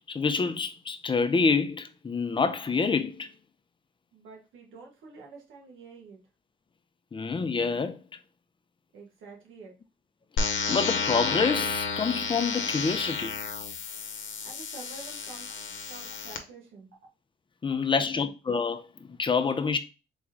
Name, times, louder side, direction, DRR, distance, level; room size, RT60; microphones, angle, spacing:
voice 1, 0.1-3.3 7.1-8.0 10.4-13.3 17.6-18.9 19.2-19.8, left 5 dB, 25° left, 0.6 m, -27 dB
voice 2, 4.1-6.2 8.9-9.7 14.4-15.6 15.9-16.9 17.7-18.3, right 4 dB, 80° right, 1.7 m, -48 dB
sound 1, 10.4-16.4, left 5 dB, 75° left, 0.9 m, -31 dB
4.1 x 3.1 x 3.6 m
cardioid pair, 90°, 20 cm